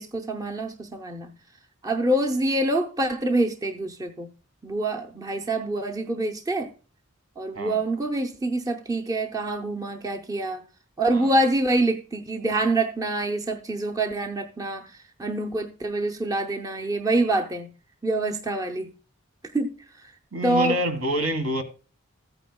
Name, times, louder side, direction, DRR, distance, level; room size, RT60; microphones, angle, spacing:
voice 1, 0.0-1.3 1.8-4.3 4.6-6.7 7.4-10.6 11.0-14.9 15.2-17.7 18.0-18.9 19.5-19.7 20.4-20.8, right 2 dB, 15° right, 0.6 m, -26 dB
voice 2, 20.3-21.6, right 1 dB, 75° right, 1.8 m, -27 dB
14.5 x 9.0 x 2.2 m
head